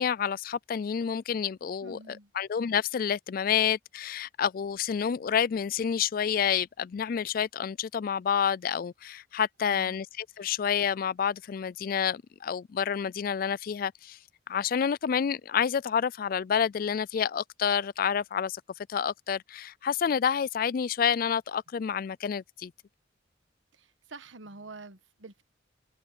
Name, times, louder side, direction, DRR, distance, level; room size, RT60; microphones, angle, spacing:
voice 1, 0.0-14.2 14.5-18.6 18.9-22.7, left 7 dB, 50° left, 0.3 m, -29 dB
voice 2, 1.8-2.3 9.6-10.0 10.4-10.5 23.7-25.4, right 3 dB, 85° right, 1.3 m, -47 dB
head